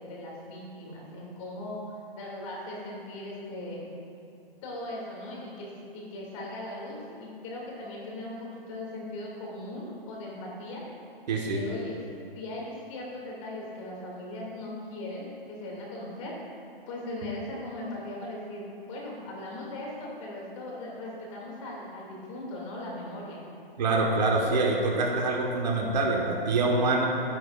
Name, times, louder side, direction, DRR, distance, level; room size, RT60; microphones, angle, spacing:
voice 1, 0.0-3.9 4.6-5.7 5.9-10.8 11.5-12.0 12.3-16.4 16.9-23.4, left 1 dB, 30° left, -3 dB, 2.4 m, -39 dB
voice 2, 11.3-11.6 23.8-27.1, right 3 dB, 45° right, 0 dB, 1.3 m, -25 dB
12.0 x 10.5 x 2.5 m, 2.6 s
hypercardioid pair, 150°, 30 cm